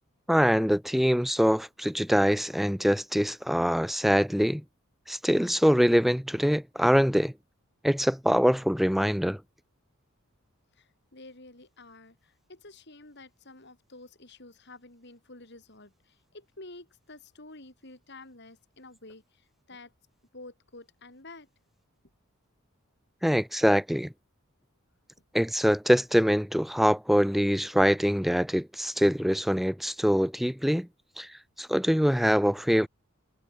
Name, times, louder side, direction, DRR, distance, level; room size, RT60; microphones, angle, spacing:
voice 1, 0.3-4.6 5.1-7.3 7.8-9.4 23.2-24.1 25.3-30.9 31.2-31.3 31.6-32.9, equal, ahead, 0.7 m, -24 dB
voice 2, 10.7-19.9 20.3-21.5, left 2 dB, 50° left, 4.3 m, -50 dB
head